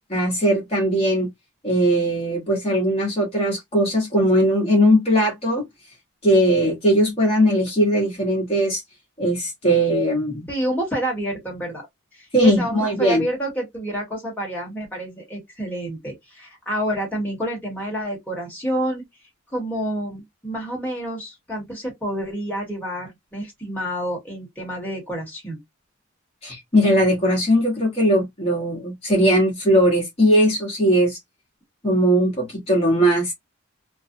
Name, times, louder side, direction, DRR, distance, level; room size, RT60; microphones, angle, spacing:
voice 1, 0.1-1.3 1.6-5.6 6.2-8.8 9.2-10.5 12.3-13.2 26.4-31.2 31.8-33.3, equal, 30° left, 1.0 m, -19 dB
voice 2, 10.5-11.8 12.2-19.0 19.5-25.6, equal, 10° left, 1.2 m, -28 dB
2.5 x 2.3 x 2.5 m
head